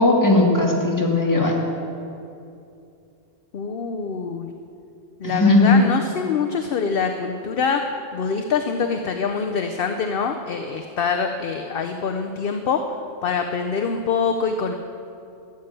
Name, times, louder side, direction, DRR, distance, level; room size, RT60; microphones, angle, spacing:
voice 1, 0.0-1.5 5.2-5.8, left 2 dB, 15° left, -2 dB, 2.0 m, -17 dB
voice 2, 3.5-4.5 5.2-12.8 13.2-14.7, left 5 dB, 55° left, 5 dB, 0.8 m, -25 dB
13.0 x 7.3 x 9.0 m, 2.6 s
omnidirectional pair, 1.3 m